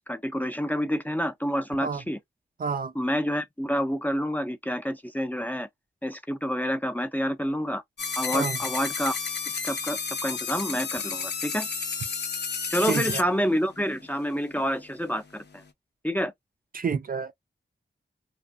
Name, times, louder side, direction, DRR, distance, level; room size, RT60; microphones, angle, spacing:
voice 1, 0.0-2.2 3.0-5.7 6.0-7.8 8.2-9.2 9.6-11.7 12.7-15.6 16.0-16.3, equal, 10° left, 0.5 m, -28 dB
voice 2, 2.6-2.9 8.3-8.6 12.9-13.0 16.7-17.3, right 5 dB, 50° right, 0.4 m, -28 dB
sound 1, 8.0-13.2, left 5 dB, 60° left, 0.5 m, -31 dB
2.6 x 2.4 x 2.3 m
cardioid pair, 50°, 20 cm